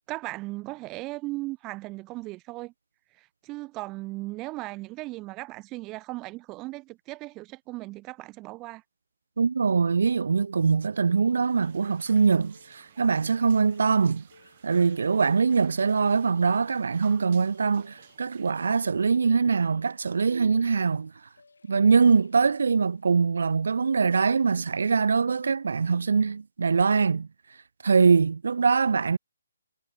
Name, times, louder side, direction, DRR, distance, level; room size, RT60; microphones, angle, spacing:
voice 1, 0.1-2.7 3.2-8.8, right 20 dB, 15° right, 0.9 m, -37 dB
voice 2, 9.4-14.2 14.6-21.1 21.7-27.3 27.8-29.2, right 5 dB, 65° right, 0.4 m, -23 dB
sound 1, 11.0-24.8, left 4 dB, 90° left, 3.8 m, -58 dB
sound 2, 11.5-18.5, right 10 dB, 35° right, 2.3 m, -54 dB
hypercardioid pair, 170°, 0 cm